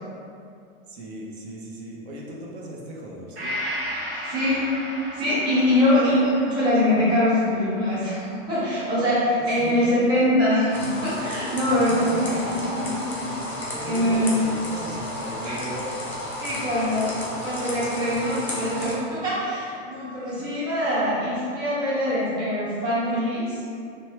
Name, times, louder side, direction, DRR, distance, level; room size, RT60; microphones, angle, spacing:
voice 1, 0.9-3.5 9.5-9.8 11.6-13.4 13.7-16.2 16.8-16.9 20.2-20.5, right 1 dB, 85° right, -3 dB, 0.8 m, -37 dB
Gong, 3.4-11.0 11.4-11.5, equal, 60° right, 1.2 m, -36 dB
voice 2, 4.2-4.7 5.1-12.8 13.8-14.4 15.4-15.6 16.4-17.1 17.4-23.6, left 1 dB, 15° right, -12 dB, 0.9 m, -23 dB
sound 1, 10.7-18.9, left 1 dB, 5° left, 0.3 m, -33 dB
3.0 x 2.3 x 3.0 m, 2.4 s
supercardioid pair, 145°, 31 cm